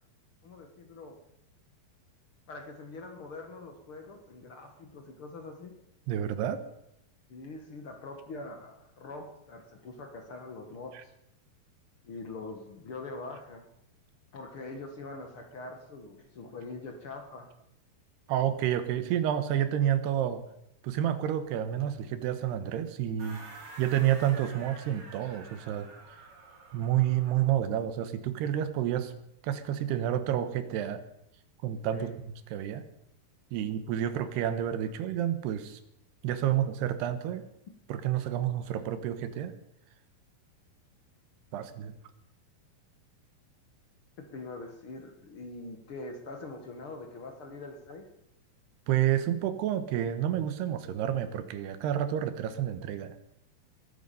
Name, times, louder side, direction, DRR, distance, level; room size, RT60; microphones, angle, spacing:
voice 1, 0.4-1.2 2.5-5.8 7.3-11.1 12.0-13.7 14.3-17.5 31.9-32.1 44.3-48.1, left 3 dB, 60° left, 4 dB, 1.4 m, -43 dB
voice 2, 6.1-6.6 18.3-20.4 20.8-23.4 23.8-25.9 26.7-29.1 29.4-31.0 31.6-32.8 33.5-35.8 36.2-37.4 37.9-39.5 41.5-41.9 48.9-53.2, right 11 dB, 80° right, 11 dB, 3.1 m, -29 dB
sound 1, 23.2-27.6, right 3 dB, 50° right, 4.4 m, -49 dB
20.5 x 9.5 x 6.9 m, 0.80 s
omnidirectional pair, 4.8 m